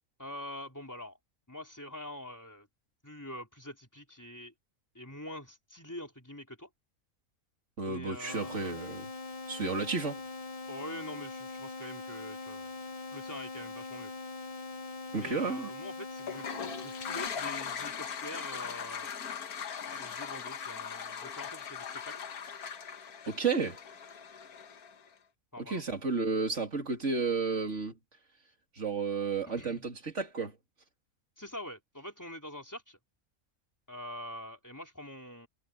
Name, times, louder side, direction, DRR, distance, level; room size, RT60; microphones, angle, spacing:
voice 1, 0.2-1.2 1.5-2.7 3.0-4.5 4.9-6.7 7.9-8.8 10.7-12.8 13.1-14.1 15.1-16.5 16.8-19.2 19.8-22.3 25.5-25.8 29.5-29.9 31.4-33.0 33.9-35.5, left 1 dB, 10° left, 3.6 m, -45 dB
voice 2, 7.8-9.0 9.5-10.2 15.1-15.7 23.3-23.8 25.6-28.0 28.8-30.5, right 4 dB, 55° right, 3.1 m, -32 dB
sound 1, 8.3-17.3, left 3 dB, 30° left, 0.7 m, -42 dB
Toilet flush, 16.2-25.1, left 7 dB, 90° left, 1.7 m, -40 dB
omnidirectional pair, 1.5 m